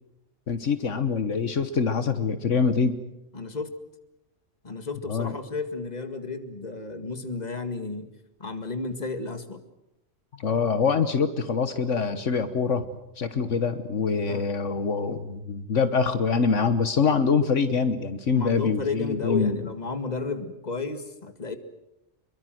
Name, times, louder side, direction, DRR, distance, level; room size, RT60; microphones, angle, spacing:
voice 1, 0.5-3.0 5.1-5.3 10.4-12.8 13.2-19.6, left 5 dB, 75° left, 11 dB, 1.5 m, -24 dB
voice 2, 3.3-3.7 4.6-8.1 8.4-9.6 14.3-14.5 18.3-21.6, left 4 dB, 35° left, 8 dB, 2.1 m, -32 dB
26.0 x 23.0 x 7.7 m, 0.88 s
omnidirectional pair, 1.3 m